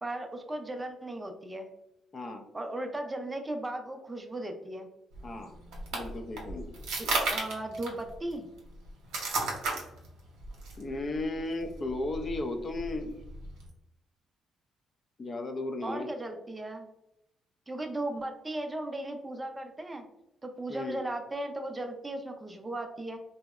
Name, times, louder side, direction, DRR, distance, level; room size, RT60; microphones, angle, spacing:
voice 1, 0.0-1.7 2.5-4.9 7.0-8.5 15.8-16.9 17.7-20.1 20.4-23.2, right 1 dB, 20° right, 5 dB, 0.4 m, -36 dB
voice 2, 2.1-2.5 5.2-5.6 5.9-6.7 10.8-13.2 15.2-16.1 20.7-21.0, left 2 dB, 40° left, 5 dB, 0.4 m, -35 dB
sound 1, 5.1-13.7, right 3 dB, 90° right, 0.8 m, -36 dB
2.7 x 2.0 x 2.3 m, 0.86 s
cardioid pair, 90°, 0 cm